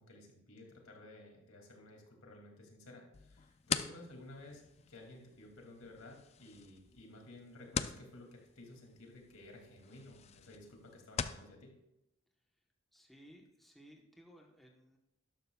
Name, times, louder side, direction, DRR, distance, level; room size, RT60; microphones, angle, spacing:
voice 1, 0.0-4.6 4.9-11.8, left 1 dB, 75° left, 1 dB, 2.4 m, -54 dB
sound 1, 3.1-11.5, left 7 dB, 30° left, 0.4 m, -43 dB
voice 2, 12.9-15.0, equal, ahead, -1 dB, 1.0 m, -59 dB
12.5 x 11.5 x 2.3 m, 0.88 s
head